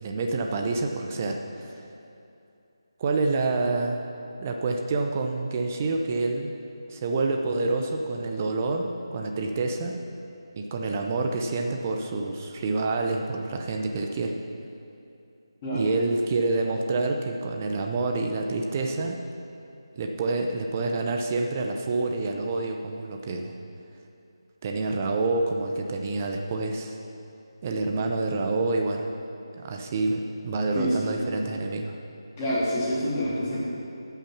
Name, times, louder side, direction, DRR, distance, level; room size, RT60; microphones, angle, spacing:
voice 1, 0.0-1.8 3.0-4.0 4.4-6.5 6.9-10.0 10.6-14.4 15.7-19.2 20.0-23.5 24.6-27.0 27.6-29.1 29.6-32.0, right 3 dB, 25° right, 3 dB, 0.7 m, -27 dB
voice 2, 32.4-33.6, equal, 20° left, -9 dB, 3.0 m, -27 dB
14.5 x 5.7 x 6.0 m, 2.7 s
figure-of-eight pair, 160°, 3 cm